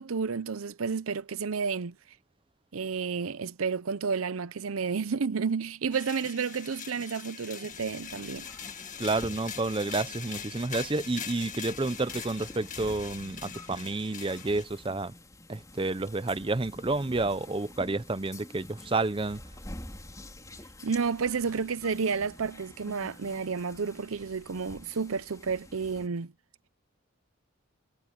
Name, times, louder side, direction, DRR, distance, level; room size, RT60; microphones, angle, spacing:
voice 1, 0.0-2.0 2.7-8.5 20.8-26.3, right 5 dB, 90° right, 0.7 m, -31 dB
sound 1, 5.9-14.6, left 8 dB, 40° left, 1.8 m, -42 dB
sound 2, 7.7-26.1, left 1 dB, 15° left, 4.4 m, -48 dB
voice 2, 9.0-15.1 15.5-19.4, right 2 dB, 25° right, 0.6 m, -30 dB
head